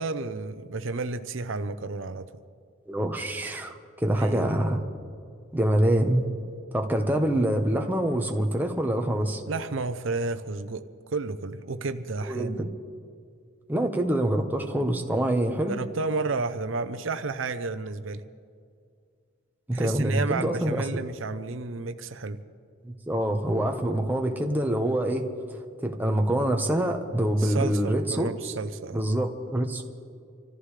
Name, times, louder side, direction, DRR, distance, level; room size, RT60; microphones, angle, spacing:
voice 1, 0.0-2.4 4.1-4.5 9.5-10.8 11.1-12.7 15.7-18.2 19.7-22.4 27.4-29.0, right 3 dB, 80° right, 10 dB, 0.7 m, -31 dB
voice 2, 2.9-4.8 5.5-6.3 6.7-9.4 12.3-12.7 13.7-15.7 19.7-20.8 22.8-25.3 25.8-28.5 28.9-29.8, right 1 dB, 10° right, 2 dB, 1.1 m, -25 dB
26.0 x 14.5 x 3.3 m, 2.2 s
head